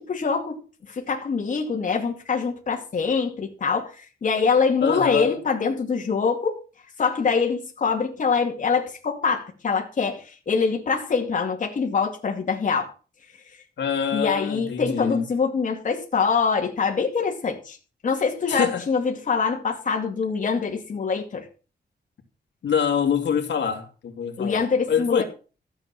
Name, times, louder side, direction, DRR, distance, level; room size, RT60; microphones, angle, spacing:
voice 1, 0.0-6.6 7.0-12.9 14.1-17.8 18.0-21.5 24.4-25.2, left 5 dB, 45° left, 2.4 m, -24 dB
voice 2, 4.8-5.4 13.8-15.2 18.5-18.9 22.6-24.6 24.9-25.2, left 7 dB, 85° left, 2.7 m, -25 dB
13.5 x 8.3 x 5.9 m
wide cardioid pair, 170°, 18 cm